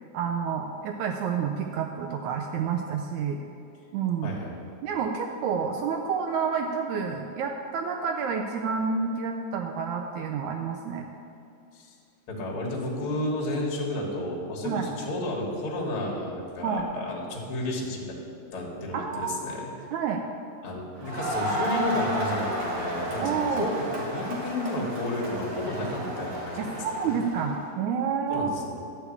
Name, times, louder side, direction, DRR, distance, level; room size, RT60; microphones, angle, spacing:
voice 1, 0.1-3.4 3.9-4.4 4.8-11.0 14.6-14.9 16.6-16.9 18.9-19.4 19.9-20.2 23.2-23.7 26.6-28.5, right 6 dB, 80° right, 3 dB, 1.7 m, -29 dB
voice 2, 4.2-4.6 11.7-11.9 12.3-18.0 18.5-19.7 20.6-27.2 28.3-28.7, left 1 dB, 50° left, -2 dB, 2.1 m, -32 dB
Crowd, 21.0-27.6, equal, 40° right, 2.2 m, -32 dB
11.0 x 4.7 x 8.3 m, 2.6 s
omnidirectional pair, 3.8 m